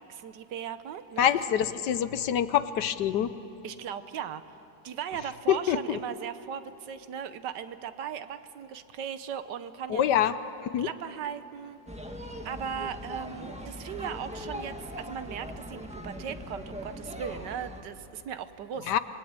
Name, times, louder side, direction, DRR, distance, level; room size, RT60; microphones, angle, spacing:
voice 1, 0.0-1.3 3.6-4.4 4.8-10.3 10.8-11.8 12.4-18.9, right 8 dB, 70° right, 12 dB, 1.4 m, -38 dB
voice 2, 1.2-3.3 5.5-6.0 9.9-10.3 10.6-10.9 18.9-19.0, left 10 dB, 70° left, 13 dB, 1.3 m, -25 dB
sound 1, 11.9-17.8, equal, 5° right, 1.4 m, -40 dB
27.5 x 21.0 x 8.8 m, 2.9 s
omnidirectional pair, 2.0 m